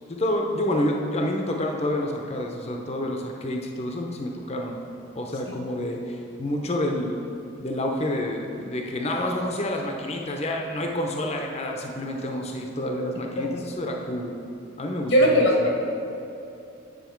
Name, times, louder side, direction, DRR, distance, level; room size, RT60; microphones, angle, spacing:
voice 1, 0.1-4.8 5.1-7.2 7.6-14.3 14.8-15.7, left 1 dB, 35° left, 1 dB, 0.7 m, -28 dB
voice 2, 15.1-15.7, equal, 80° left, -1 dB, 1.4 m, -18 dB
9.3 x 6.1 x 4.5 m, 2.8 s
head